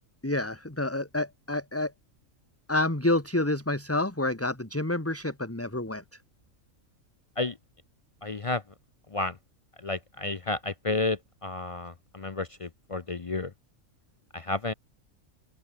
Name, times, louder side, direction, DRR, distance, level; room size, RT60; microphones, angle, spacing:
voice 1, 0.2-1.9 2.7-6.0, left 2 dB, 10° left, 2.2 m, -28 dB
voice 2, 8.2-8.6 9.1-9.4 9.8-13.5 14.3-14.7, left 3 dB, 35° left, 0.5 m, -31 dB
open air
omnidirectional pair, 1.4 m